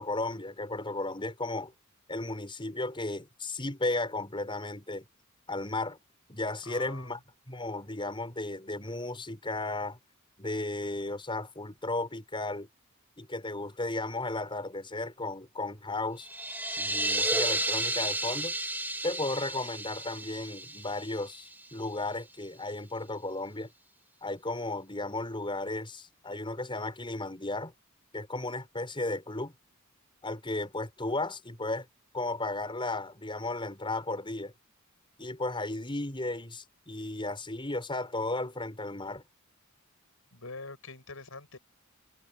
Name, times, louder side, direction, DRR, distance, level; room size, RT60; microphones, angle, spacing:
voice 1, 0.0-1.7 2.1-5.1 5.5-6.0 6.3-7.2 7.5-10.0 10.4-12.7 13.2-16.3 16.8-18.5 19.0-23.7 24.2-27.7 28.1-29.5 30.2-31.9 32.1-34.5 35.2-39.2, left 2 dB, 25° left, 6.1 m, -34 dB
voice 2, 6.6-7.1 40.3-41.6, left 3 dB, 70° left, 7.5 m, -44 dB
sound 1, 16.2-21.8, right 2 dB, 10° right, 2.2 m, -32 dB
head